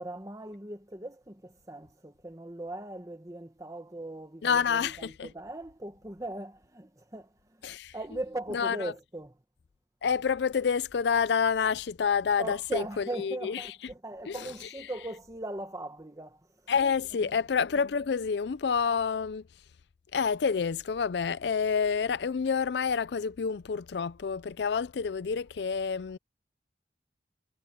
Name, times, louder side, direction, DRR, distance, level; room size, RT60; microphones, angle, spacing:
voice 1, 0.0-9.4 12.4-16.7 17.2-17.3, right 1 dB, 20° right, 1.5 m, -39 dB
voice 2, 4.4-5.3 7.6-9.0 10.0-13.9 14.2-15.1 16.7-19.4 20.1-26.2, left 6 dB, 70° left, 0.4 m, -29 dB
head